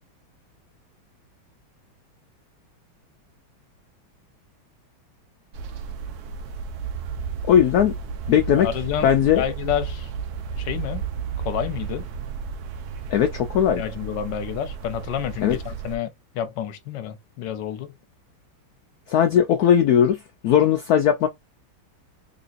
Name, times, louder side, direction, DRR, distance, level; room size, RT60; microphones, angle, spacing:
sound 1, 5.5-16.0, right 6 dB, 70° right, 0.9 m, -33 dB
voice 1, 7.4-7.9 8.3-8.7 9.0-9.4 13.1-13.8 15.4-15.6 19.1-21.3, left 9 dB, 90° left, 0.8 m, -18 dB
voice 2, 8.5-10.1 10.6-11.0 11.4-12.1 13.8-16.1 16.3-18.0, left 10 dB, 70° left, 1.3 m, -29 dB
4.0 x 3.1 x 2.4 m
omnidirectional pair, 2.2 m